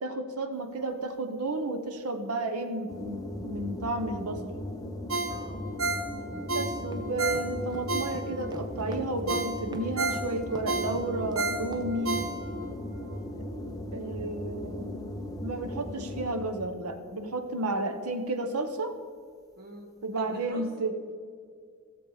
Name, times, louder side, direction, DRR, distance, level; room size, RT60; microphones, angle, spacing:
voice 1, 0.0-4.4 6.5-12.2 13.9-15.1 15.4-18.9 20.0-20.9, right 2 dB, 90° right, 8 dB, 1.0 m, -32 dB
sound 1, 2.9-16.6, left 1 dB, 15° left, 0.9 m, -37 dB
Ringtone, 5.1-8.6 8.9-9.0 9.3-12.7 13.1-13.2, right 2 dB, 65° right, 1.1 m, -32 dB
voice 2, 5.3-5.6 12.4-12.8 19.5-20.7, equal, 45° right, 1 dB, 1.5 m, -46 dB
sound 2, 6.9-12.3, right 1 dB, 20° right, 0.6 m, -44 dB
15.5 x 7.2 x 4.9 m, 2.1 s
head